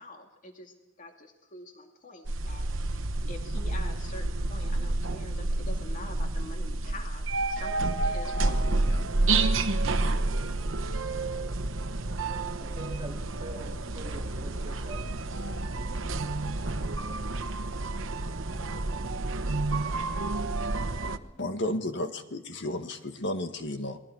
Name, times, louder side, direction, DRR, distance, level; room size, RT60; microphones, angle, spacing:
voice 1, 0.0-9.4, left 2 dB, 40° left, 3 dB, 2.4 m, -46 dB
sound 1, 2.3-21.2, right 2 dB, 75° right, 1.1 m, -29 dB
voice 2, 12.6-15.0, right 1 dB, 25° right, 0 dB, 2.7 m, -44 dB
voice 3, 21.4-24.0, left 1 dB, 60° left, 7 dB, 1.7 m, -32 dB
28.5 x 21.0 x 4.8 m, 1.0 s
head